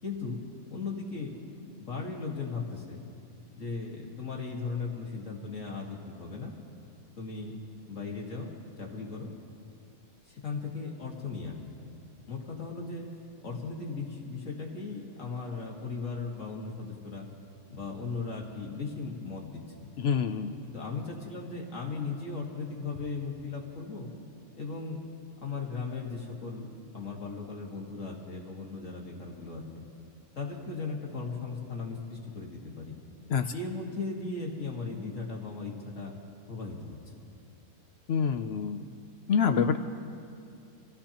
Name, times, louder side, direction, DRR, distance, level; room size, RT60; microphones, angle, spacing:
voice 1, 0.0-1.4 1.8-3.0 3.6-6.5 7.2-7.5 7.9-9.3 10.3-11.5 12.3-13.1 13.4-17.3 17.7-19.9 20.6-24.1 24.6-25.0 25.4-29.8 30.4-33.0 33.5-36.1 36.5-37.0, left 4 dB, 55° left, -1 dB, 2.1 m, -37 dB
voice 2, 20.0-20.7 33.3-33.5 38.1-38.9 39.3-39.8, left 6 dB, 70° left, 9 dB, 0.6 m, -27 dB
26.5 x 15.5 x 2.9 m, 2.5 s
omnidirectional pair, 1.6 m